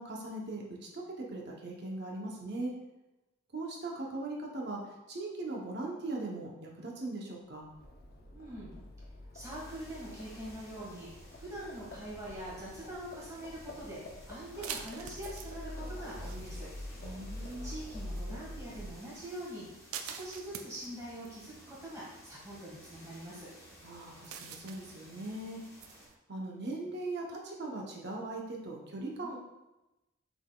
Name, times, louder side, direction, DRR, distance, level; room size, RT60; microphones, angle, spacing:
voice 1, 0.0-2.7 3.5-7.7 17.0-17.7 23.8-25.6 26.3-29.4, right 2 dB, 50° right, -1 dB, 0.7 m, -39 dB
Livestock farm animals working animals, 7.6-19.2, left 1 dB, 45° left, 0.5 m, -46 dB
voice 2, 8.3-8.9 9.3-11.1 11.4-14.0 14.3-16.7 17.6-19.7 20.0-23.5 29.2-29.4, right 1 dB, 15° right, -6 dB, 1.4 m, -44 dB
sound 1, 9.4-26.1, equal, 15° left, 0.9 m, -56 dB
sound 2, 11.5-26.1, right 8 dB, 80° right, 0.4 m, -50 dB
5.9 x 3.7 x 2.2 m, 1.0 s
head